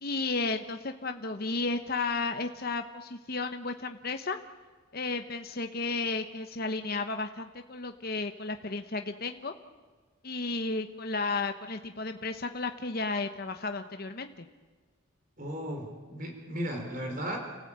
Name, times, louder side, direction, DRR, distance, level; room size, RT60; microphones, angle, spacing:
voice 1, 0.0-4.4 4.9-9.5 10.2-14.5, left 3 dB, 45° left, 7 dB, 1.0 m, -33 dB
voice 2, 15.4-17.4, equal, 40° right, 3 dB, 4.8 m, -35 dB
30.0 x 15.0 x 8.8 m, 1.4 s
head